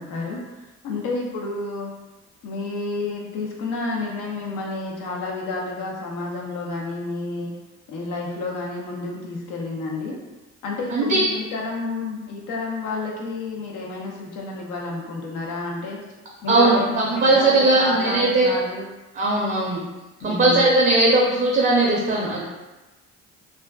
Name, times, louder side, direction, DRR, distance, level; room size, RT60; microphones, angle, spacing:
voice 1, 0.0-1.9 2.4-7.5 7.9-10.2 10.6-16.0 16.4-18.9 20.2-20.6, left 3 dB, 85° left, -2 dB, 0.6 m, -30 dB
voice 2, 10.9-11.3 16.5-16.8 17.1-18.5 19.2-19.8 20.2-22.4, right 2 dB, 30° right, -3 dB, 0.5 m, -18 dB
2.4 x 2.3 x 2.2 m, 1.1 s
cardioid pair, 90°, 30 cm